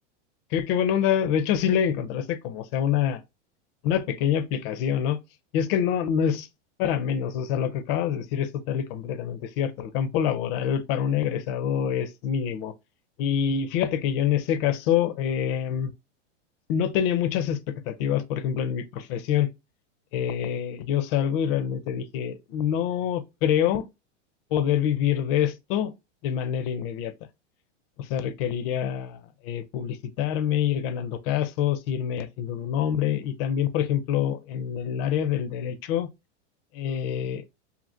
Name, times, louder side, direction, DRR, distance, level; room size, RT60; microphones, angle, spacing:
voice 1, 0.5-3.2 3.8-5.2 5.5-6.5 6.8-12.7 13.2-15.9 16.7-17.6 17.9-19.5 20.1-23.9 24.5-25.9 26.2-27.1 28.0-36.1 36.7-37.4, left 9 dB, 50° left, 0.5 m, -26 dB
2.8 x 2.5 x 2.6 m
hypercardioid pair, 125°, 36 cm